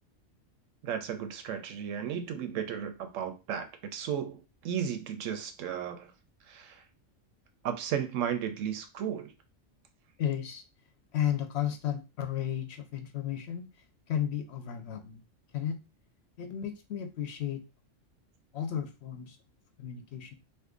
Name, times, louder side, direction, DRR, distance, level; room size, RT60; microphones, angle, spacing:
voice 1, 0.8-6.1 6.5-6.8 7.6-9.3, right 8 dB, 80° right, 1.0 m, -34 dB
voice 2, 10.2-10.6 11.1-13.7 14.1-15.2 15.5-15.8 16.4-17.6 18.5-19.4 19.8-20.3, left 10 dB, 65° left, 0.7 m, -33 dB
2.6 x 2.5 x 3.6 m
omnidirectional pair, 1.3 m